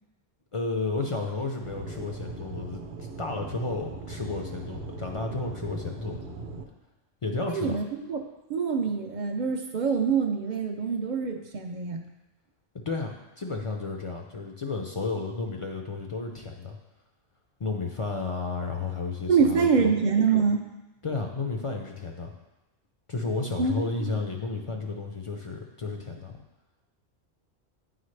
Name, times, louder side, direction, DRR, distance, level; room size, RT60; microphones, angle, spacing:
voice 1, 0.5-6.2 7.2-7.8 12.7-16.8 17.6-19.9 21.0-22.3 23.1-26.4, left 3 dB, 45° left, 2 dB, 0.4 m, -32 dB
Aircraft / Engine, 1.6-6.6, right 2 dB, 75° right, 0.9 m, -39 dB
voice 2, 7.5-8.2 8.5-12.0 19.3-20.6 23.6-23.7 24.0-24.1, right 5 dB, 55° right, 4 dB, 0.6 m, -25 dB
9.4 x 4.0 x 3.2 m, 1.0 s
omnidirectional pair, 1.1 m